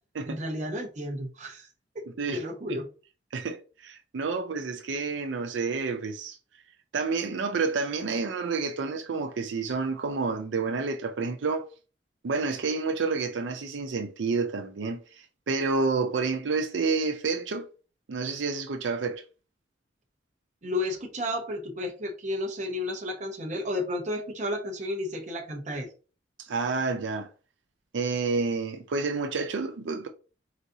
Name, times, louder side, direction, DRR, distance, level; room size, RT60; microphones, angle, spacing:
voice 1, 0.3-1.7 1.9-2.1 2.3-2.9 20.6-25.9, left 1 dB, 40° right, 0.9 m, -32 dB
voice 2, 3.3-6.4 6.9-11.7 12.2-17.7 18.1-19.2 26.4-27.3 27.9-30.1, right 4 dB, 85° right, 0.5 m, -29 dB
4.0 x 4.0 x 2.7 m
head